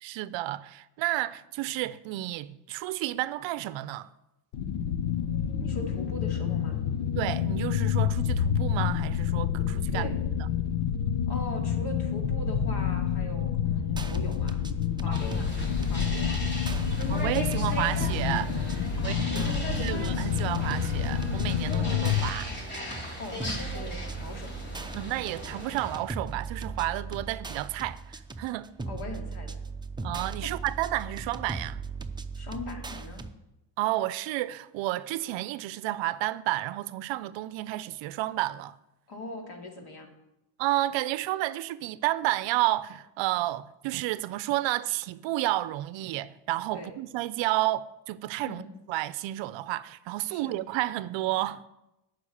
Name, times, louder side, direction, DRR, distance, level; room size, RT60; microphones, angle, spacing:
voice 1, 0.0-4.1 7.1-10.1 15.1-15.2 17.1-19.2 19.8-22.5 24.9-28.7 30.0-31.8 33.8-38.7 40.6-48.6 48.9-51.6, right 16 dB, 65° right, 0.6 m, -31 dB
sound 1, 4.5-22.3, left 8 dB, 90° left, 1.0 m, -28 dB
voice 2, 5.6-6.8 9.9-10.2 11.3-14.6 15.0-15.6 15.9-16.5 19.0-20.1 23.1-24.5 28.9-29.6 32.3-33.3 39.1-40.1 46.7-46.9 48.4-48.7 50.3-50.6, left 2 dB, 50° left, 2.7 m, -40 dB
sound 2, 13.9-33.3, right 4 dB, 10° right, 0.6 m, -38 dB
sound 3, 15.1-26.0, equal, 20° left, 3.4 m, -38 dB
9.5 x 6.2 x 8.6 m
cardioid pair, 105°, 48 cm